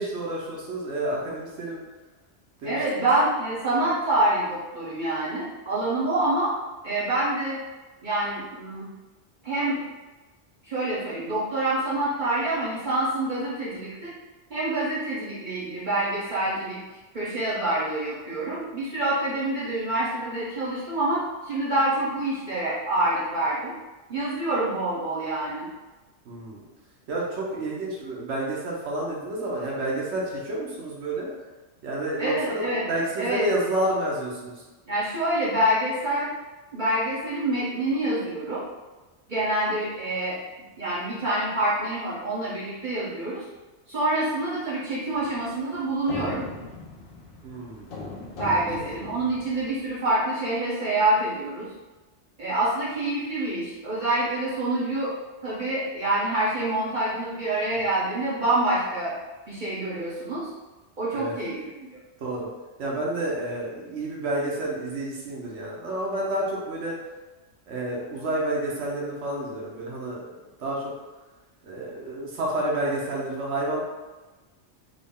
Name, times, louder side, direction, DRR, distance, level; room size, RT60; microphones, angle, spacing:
voice 1, 0.0-1.8 2.6-3.1 26.2-26.6 27.1-31.3 31.8-34.6 47.4-47.9 61.1-61.3 62.2-62.5 62.8-67.0 67.7-70.2 70.6-70.9 71.6-73.8, right 1 dB, 75° right, -3 dB, 1.1 m, -29 dB
voice 2, 2.6-6.5 6.8-7.6 8.0-8.9 9.4-9.8 10.6-14.1 14.5-16.8 17.1-23.7 24.1-25.7 32.2-32.8 33.2-33.4 34.9-36.3 36.7-38.7 39.3-40.4 40.8-43.4 43.9-46.5 48.4-51.7 52.4-55.1 55.4-59.1 59.5-60.5 61.0-61.9, right 1 dB, 45° right, -10 dB, 1.1 m, -26 dB
sound 1, 45.1-50.0, left 3 dB, 60° left, 0.8 m, -39 dB
3.7 x 2.1 x 3.6 m, 1.2 s
omnidirectional pair, 1.2 m